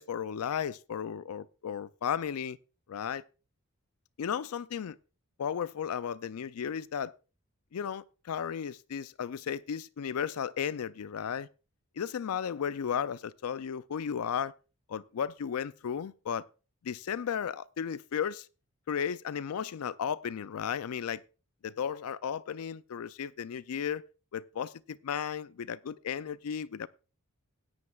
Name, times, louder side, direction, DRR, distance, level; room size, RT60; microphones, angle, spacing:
voice 1, 0.0-2.6 2.9-3.2 4.2-5.0 5.4-7.1 7.7-11.5 12.0-14.5 14.9-16.4 16.8-18.5 18.9-21.2 21.6-24.1 24.3-26.9, left 8 dB, 75° left, 0.4 m, -34 dB
16.5 x 9.7 x 2.4 m
head